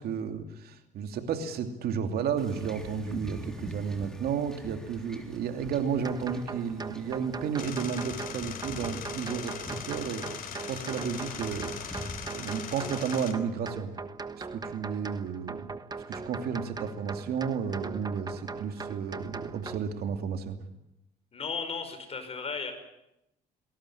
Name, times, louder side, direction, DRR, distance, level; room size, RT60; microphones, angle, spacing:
voice 1, 0.0-14.0 14.4-15.7 16.1-20.6, right 7 dB, 65° right, 6 dB, 2.8 m, -33 dB
Wind / Ocean / Boat Water vehicle, 2.4-12.7, equal, 5° left, 3.5 m, -44 dB
sound 1, 6.0-19.8, right 4 dB, 25° right, 1.3 m, -40 dB
sound 2, 7.6-13.3, left 8 dB, 60° left, 3.1 m, -40 dB
voice 2, 21.3-22.7, left 5 dB, 35° left, 8 dB, 5.3 m, -35 dB
20.5 x 18.5 x 10.0 m, 0.85 s
cardioid pair, 110°, 17 cm